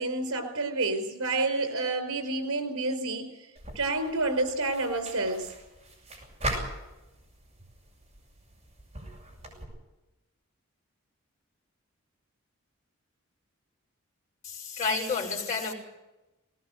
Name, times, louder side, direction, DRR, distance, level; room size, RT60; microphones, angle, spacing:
voice 1, 0.0-3.3 3.7-5.5, right 2 dB, 85° right, 7 dB, 4.9 m, -29 dB
sound 1, 3.6-9.6, right 1 dB, 30° right, 7.5 m, -40 dB
voice 2, 14.4-15.7, left 4 dB, 35° left, -2 dB, 5.3 m, -30 dB
20.0 x 19.5 x 8.1 m, 1.0 s
head